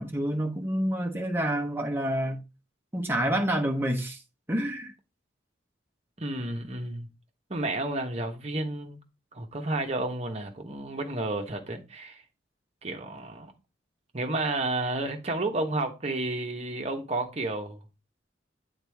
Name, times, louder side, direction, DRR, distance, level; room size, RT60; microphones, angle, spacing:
voice 1, 0.0-2.4 2.9-4.2 4.5-4.9, right 1 dB, 10° right, 0.9 m, -28 dB
voice 2, 6.2-7.1 7.5-9.0 9.3-12.2 12.8-13.5 14.1-17.8, right 2 dB, 35° right, 1.0 m, -31 dB
8.1 x 4.0 x 3.4 m
head